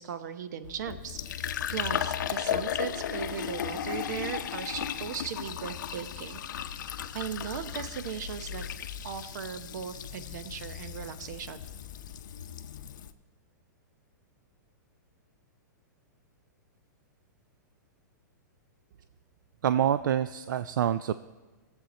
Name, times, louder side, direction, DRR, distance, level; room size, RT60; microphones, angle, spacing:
voice 1, 0.0-6.4 7.1-8.6 9.0-11.6, right 8 dB, 65° right, 11 dB, 0.9 m, -38 dB
Fill (with liquid), 0.6-13.1, left 9 dB, 75° left, 0.6 m, -35 dB
voice 2, 19.6-21.1, right 10 dB, 80° right, 13 dB, 0.4 m, -26 dB
19.0 x 7.7 x 4.2 m, 1.3 s
hypercardioid pair, 150°, 10 cm